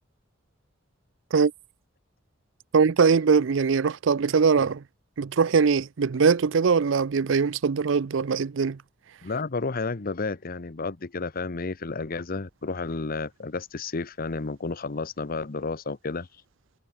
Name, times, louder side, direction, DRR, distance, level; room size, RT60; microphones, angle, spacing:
voice 1, 2.7-4.8 5.2-8.8, right 5 dB, 70° right, 0.5 m, -21 dB
voice 2, 9.2-16.3, left 3 dB, 50° left, 0.9 m, -31 dB
head